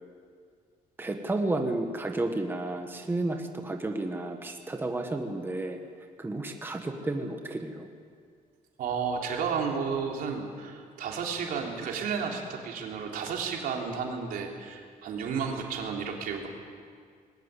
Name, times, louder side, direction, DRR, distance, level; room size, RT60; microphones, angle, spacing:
voice 1, 1.0-5.8 6.2-7.9, right 2 dB, 15° right, 4 dB, 1.5 m, -32 dB
voice 2, 8.8-16.5, right 6 dB, 90° right, 0 dB, 3.5 m, -32 dB
20.5 x 19.5 x 8.4 m, 2.1 s
cardioid pair, 150°, 14 cm